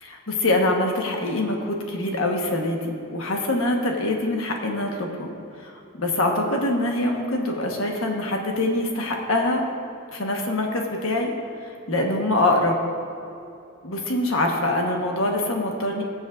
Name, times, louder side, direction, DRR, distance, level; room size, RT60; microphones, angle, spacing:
voice 1, 0.0-5.3 5.6-5.7 6.0-9.6 10.1-11.3 11.9-12.7 13.8-16.0, left 1 dB, 70° left, 1 dB, 1.4 m, -24 dB
20.5 x 7.2 x 2.6 m, 2.7 s
head